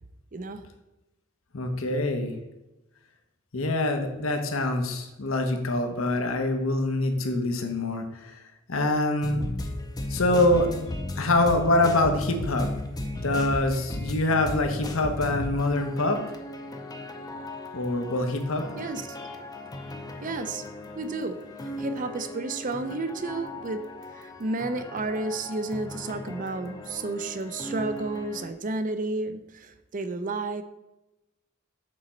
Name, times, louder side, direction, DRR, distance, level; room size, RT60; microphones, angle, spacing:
voice 1, 0.3-0.7 18.8-19.2 20.2-20.7 20.9-21.4 21.8-30.6, right 3 dB, 40° right, 10 dB, 0.5 m, -32 dB
voice 2, 1.5-2.3 3.5-8.4 8.7-9.4 10.1-10.7 11.2-12.7 13.2-16.2 17.7-18.6, left 2 dB, 85° left, 5 dB, 1.0 m, -25 dB
sound 1, 9.2-28.5, left 1 dB, 20° left, 0.5 m, -36 dB
6.7 x 4.2 x 5.1 m, 0.98 s
head